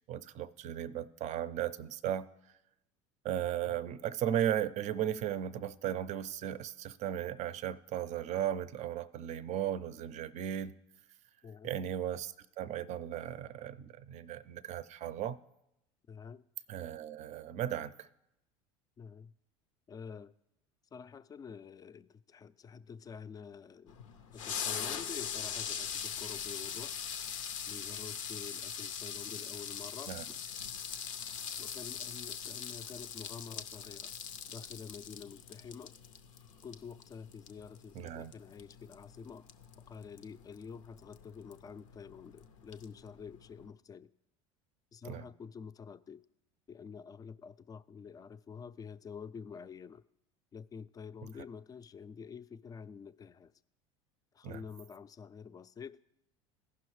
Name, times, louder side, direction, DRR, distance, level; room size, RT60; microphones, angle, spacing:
voice 1, 0.1-2.3 3.2-10.7 11.6-15.4 16.7-18.1 30.1-30.2 37.9-38.3 45.0-45.3 54.4-54.6, right 11 dB, 45° right, 0.5 m, -36 dB
voice 2, 3.6-4.0 11.4-11.7 16.1-16.4 19.0-19.3 19.9-20.3 20.9-24.0 24.3-26.9 27.7-30.4 31.6-34.1 34.5-35.9 36.6-39.5 39.8-44.1 44.9-46.2 46.7-50.0 50.5-53.5 54.3-56.0, left 6 dB, 25° left, 0.3 m, -48 dB
sound 1, 23.9-43.7, left 8 dB, 90° left, 0.6 m, -42 dB
15.0 x 5.6 x 3.1 m
hypercardioid pair, 85°, 16 cm